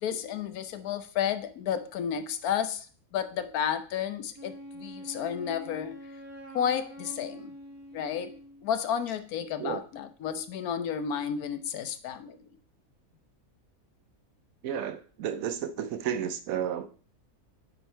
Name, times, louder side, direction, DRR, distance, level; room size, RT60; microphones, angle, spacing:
voice 1, 0.0-6.0 6.5-7.5 7.9-8.3 8.6-12.5, left 8 dB, 80° left, 10 dB, 1.2 m, -32 dB
Wind instrument woodwind instrument, 4.3-8.7, equal, 15° right, 0.9 m, -45 dB
voice 2, 14.6-16.9, right 9 dB, 70° right, 10 dB, 1.1 m, -32 dB
8.2 x 4.6 x 4.4 m, 0.41 s
omnidirectional pair, 1.6 m